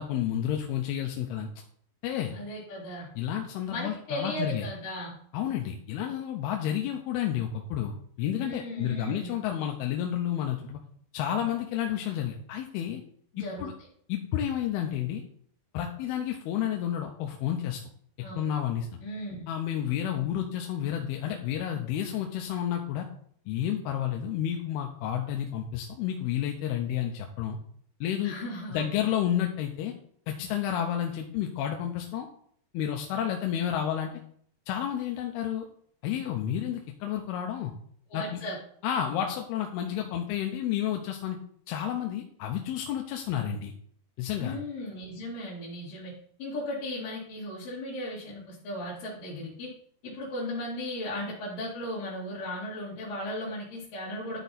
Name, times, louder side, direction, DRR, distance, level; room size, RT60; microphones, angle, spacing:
voice 1, 0.0-1.5 2.0-2.4 3.2-4.7 5.3-10.8 11.1-13.0 13.4-13.7 14.1-15.2 15.7-17.8 18.3-19.0 19.5-23.1 23.5-27.6 28.0-28.4 28.7-29.9 30.3-32.3 32.7-34.1 34.7-35.7 36.0-37.7 38.1-38.4 38.8-41.4 41.7-43.7 44.2-44.6, left 10 dB, 80° left, 2 dB, 2.5 m, -30 dB
voice 2, 2.3-3.1 3.7-5.2 8.4-9.4 13.3-13.7 18.2-18.4 19.0-19.5 28.2-28.9 38.1-38.6 44.4-46.1 46.4-49.7 50.0-54.4, left 1 dB, 60° left, -8 dB, 3.5 m, -36 dB
12.0 x 4.6 x 4.1 m, 0.62 s
omnidirectional pair, 4.8 m